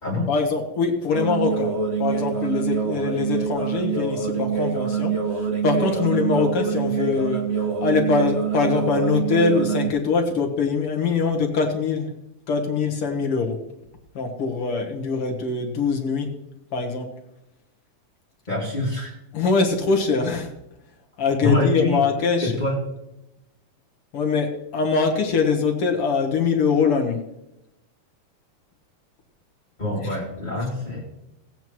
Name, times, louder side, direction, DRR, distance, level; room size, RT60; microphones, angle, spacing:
voice 1, 0.3-1.7 2.0-7.4 7.8-12.1 12.5-13.6 14.2-16.3 16.7-17.1 19.3-20.5 21.2-22.5 24.1-27.2 30.0-30.2, left 4 dB, 55° left, 2 dB, 2.0 m, -23 dB
sound 1, 1.1-9.9, right 6 dB, 65° right, 0.6 m, -25 dB
voice 2, 18.5-19.1 21.4-22.0 22.4-22.8 29.8-31.1, left 2 dB, 15° left, -5 dB, 2.4 m, -25 dB
18.0 x 9.1 x 3.1 m, 0.89 s
omnidirectional pair, 3.4 m